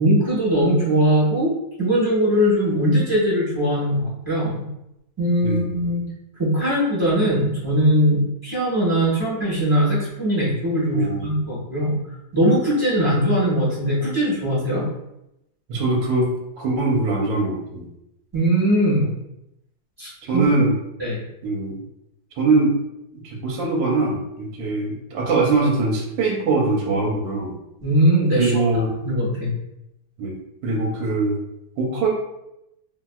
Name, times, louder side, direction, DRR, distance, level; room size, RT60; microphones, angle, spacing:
voice 1, 0.0-1.5 1.8-4.6 5.2-6.0 6.4-11.9 12.3-14.8 18.3-19.1 20.0-20.4 21.0-21.2 27.8-28.5 29.0-29.5, equal, 15° right, -9 dB, 0.9 m, -20 dB
voice 2, 10.9-11.3 15.7-17.9 20.3-20.7 21.4-21.8 22.4-22.8 23.2-27.6 28.4-29.0 30.2-30.4 30.6-31.4 31.8-32.1, right 3 dB, 70° right, -2 dB, 1.2 m, -22 dB
2.9 x 2.7 x 2.3 m, 0.84 s
omnidirectional pair, 2.2 m